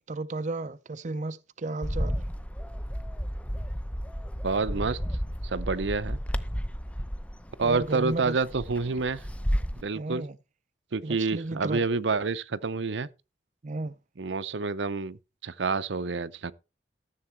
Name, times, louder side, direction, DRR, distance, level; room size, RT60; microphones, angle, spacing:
voice 1, 0.1-2.2 7.6-8.4 9.9-10.4 11.0-11.8 13.6-14.0, right 2 dB, 40° right, 0.5 m, -33 dB
Bird, 1.8-9.8, equal, 5° left, 0.6 m, -32 dB
voice 2, 4.4-5.0 5.4-6.2 7.6-9.2 9.8-10.2 10.9-13.1 14.2-15.2 15.4-16.5, right 4 dB, 80° right, 0.7 m, -28 dB
13.5 x 7.6 x 4.5 m
head